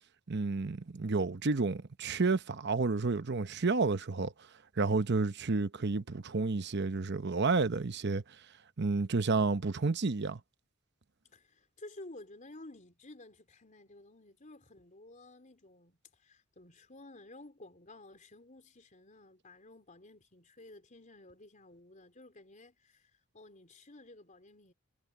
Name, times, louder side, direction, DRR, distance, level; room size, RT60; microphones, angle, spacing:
voice 1, 0.3-4.3 4.8-8.2 8.8-10.4, right 3 dB, 55° right, 0.8 m, -30 dB
voice 2, 11.3-24.7, left 2 dB, 40° left, 3.8 m, -53 dB
head